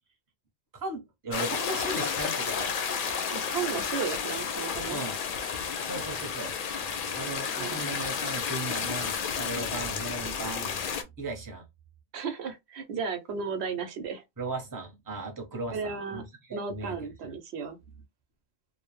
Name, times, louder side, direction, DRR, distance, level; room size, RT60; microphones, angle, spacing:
voice 1, 0.7-2.8 4.9-5.2 5.8-6.5 7.1-11.6 14.4-17.4 17.9-18.0, right 2 dB, 20° right, 0.7 m, -37 dB
sound 1, 1.3-11.0, left 6 dB, 60° left, 0.6 m, -32 dB
voice 2, 3.3-5.0 7.5-7.8 12.1-14.2 15.7-16.2 16.5-17.8, right 6 dB, 80° right, 0.9 m, -34 dB
2.5 x 2.0 x 3.0 m
omnidirectional pair, 1.1 m